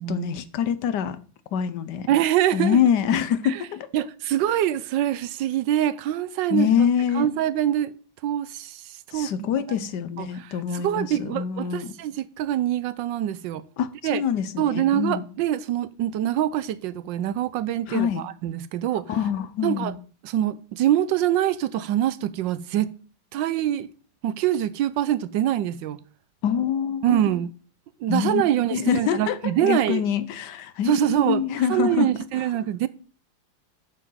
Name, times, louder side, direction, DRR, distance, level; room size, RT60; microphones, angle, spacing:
voice 1, 0.1-1.2 1.5-2.1 2.5-3.9 6.5-7.3 9.1-11.9 13.8-15.2 17.9-18.2 19.1-20.0 26.4-27.4 28.1-28.4 28.7-32.1, left 8 dB, 70° left, 1.4 m, -25 dB
voice 2, 2.1-2.8 3.4-3.7 3.9-6.7 7.1-7.9 8.2-9.5 9.8-9.9 10.2-13.6 14.0-14.2 14.6-19.1 19.6-19.9 20.2-22.9 23.3-23.9 24.2-26.0 27.0-27.5 28.0-30.0 30.8-32.9, right 12 dB, 80° right, 1.3 m, -24 dB
8.6 x 7.1 x 5.6 m
omnidirectional pair, 2.0 m